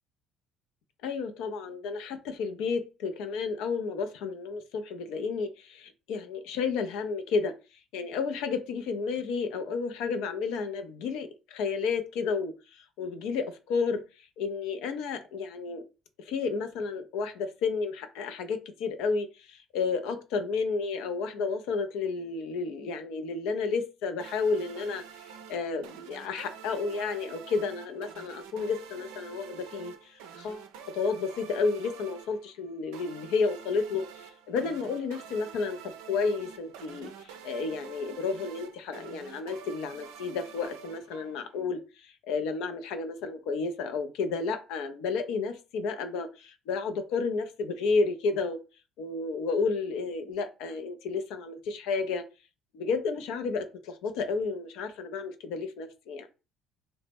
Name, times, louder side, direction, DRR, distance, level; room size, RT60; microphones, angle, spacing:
voice 1, 1.0-7.5 7.9-15.8 16.2-30.7 30.9-35.8 36.1-48.6 49.0-52.2 52.7-56.3, left 4 dB, 70° left, 7 dB, 0.4 m, -31 dB
sound 1, 24.2-41.6, right 7 dB, 75° right, 0.4 m, -47 dB
2.8 x 2.0 x 3.4 m, 0.31 s
hypercardioid pair, 55°, 0 cm